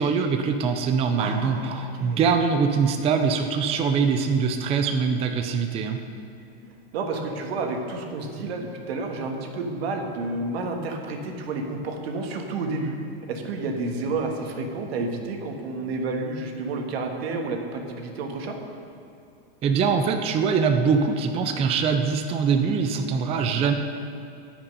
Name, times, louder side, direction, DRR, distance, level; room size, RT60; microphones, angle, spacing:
voice 1, 0.0-6.0 19.6-23.7, right 5 dB, 20° right, 6 dB, 0.5 m, -23 dB
voice 2, 1.2-2.2 6.9-12.9 13.3-18.5, right 3 dB, 75° right, 3 dB, 1.7 m, -30 dB
17.0 x 5.8 x 5.4 m, 2.5 s
supercardioid pair, 145°, 31 cm